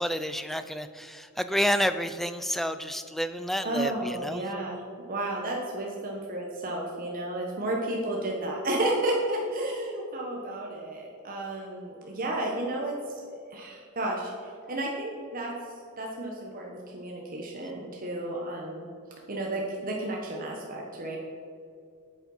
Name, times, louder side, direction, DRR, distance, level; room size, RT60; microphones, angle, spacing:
voice 1, 0.0-4.4, equal, ahead, 10 dB, 0.3 m, -29 dB
voice 2, 3.6-4.8 5.1-15.5 16.0-18.9 19.3-21.2, right 1 dB, 40° right, -1 dB, 1.1 m, -32 dB
8.8 x 7.6 x 5.4 m, 2.3 s
head